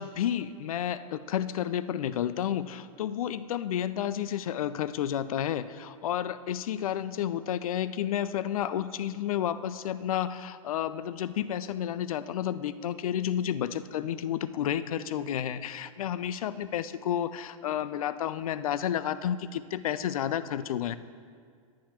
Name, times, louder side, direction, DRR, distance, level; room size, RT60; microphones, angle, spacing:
voice 1, 0.0-21.0, left 10 dB, 80° left, 14 dB, 0.4 m, -31 dB
11.0 x 8.5 x 2.9 m, 2.1 s
hypercardioid pair, 150°, 18 cm